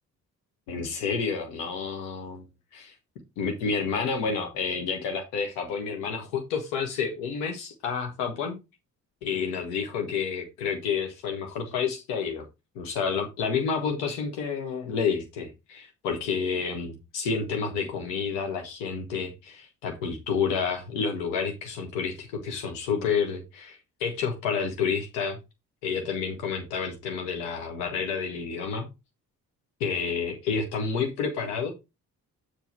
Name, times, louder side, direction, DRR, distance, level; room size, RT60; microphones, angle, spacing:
voice 1, 0.7-2.4 2.8-2.9 3.4-8.6 9.2-12.4 12.7-25.4 25.8-28.9 29.8-31.7, left 6 dB, 65° left, 1.2 m, -29 dB
7.1 x 4.5 x 4.5 m
figure-of-eight pair, 40°, 44 cm